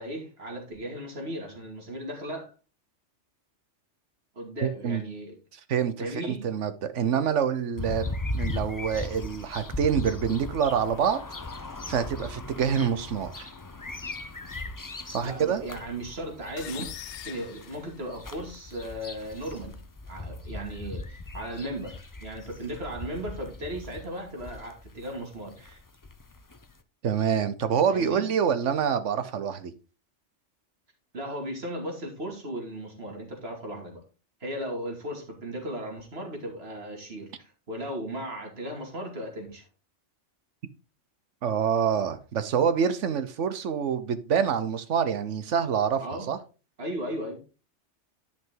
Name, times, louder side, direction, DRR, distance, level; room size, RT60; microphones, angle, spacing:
voice 1, 0.0-2.5 4.3-5.4 6.0-6.5 15.2-16.9 17.2-19.8 20.1-25.8 27.9-28.3 31.1-34.0 34.4-39.7 46.0-46.3 46.8-47.4, right 1 dB, 55° right, 1 dB, 2.8 m, -36 dB
voice 2, 4.6-5.0 5.7-11.2 11.9-13.5 15.1-15.6 27.0-29.7 41.4-46.0 46.3-46.4, right 7 dB, 80° right, 12 dB, 1.2 m, -26 dB
sound 1, 7.8-26.8, left 2 dB, 25° left, 0.5 m, -38 dB
sound 2, 16.6-18.5, left 10 dB, 75° left, 1.0 m, -42 dB
10.5 x 5.9 x 3.8 m, 0.33 s
omnidirectional pair, 1.2 m